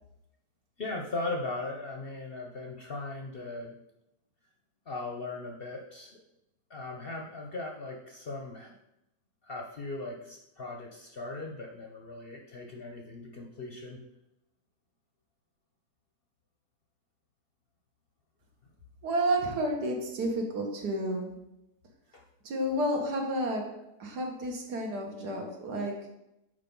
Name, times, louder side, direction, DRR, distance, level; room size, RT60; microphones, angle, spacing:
voice 1, 0.8-3.7 4.9-6.2 6.7-8.7 9.4-14.0 22.1-22.2 22.8-22.9, left 2 dB, 50° left, 1 dB, 0.7 m, -38 dB
voice 2, 19.0-21.4 22.4-23.7 24.0-26.0, right 1 dB, 80° right, 1 dB, 1.8 m, -31 dB
6.6 x 4.8 x 5.3 m, 0.88 s
omnidirectional pair, 1.7 m